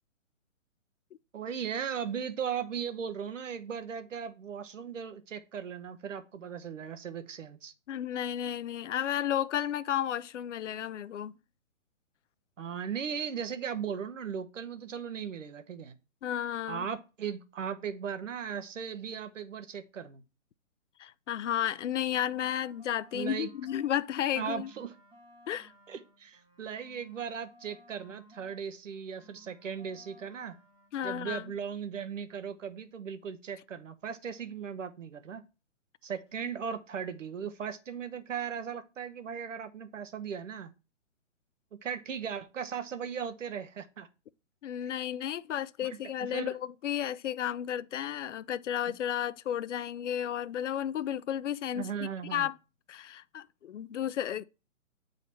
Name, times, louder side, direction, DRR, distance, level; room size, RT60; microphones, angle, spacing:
voice 1, 1.3-7.7 12.6-15.9 16.7-20.2 23.1-23.5 24.4-24.9 25.9-30.6 31.0-35.4 36.0-40.7 41.8-44.1 45.8-46.6 48.9-49.0 51.7-52.5, right 7 dB, 70° right, 1.3 m, -37 dB
voice 2, 7.9-11.3 16.2-16.9 21.0-24.7 25.5-25.7 30.9-31.5 44.6-52.6 52.9-54.4, left 10 dB, 65° left, 0.6 m, -33 dB
sound 1, 21.7-24.0 24.3-28.6 28.9-30.9, equal, 10° right, 1.2 m, -59 dB
8.6 x 4.0 x 4.3 m
hypercardioid pair, 155°, 39 cm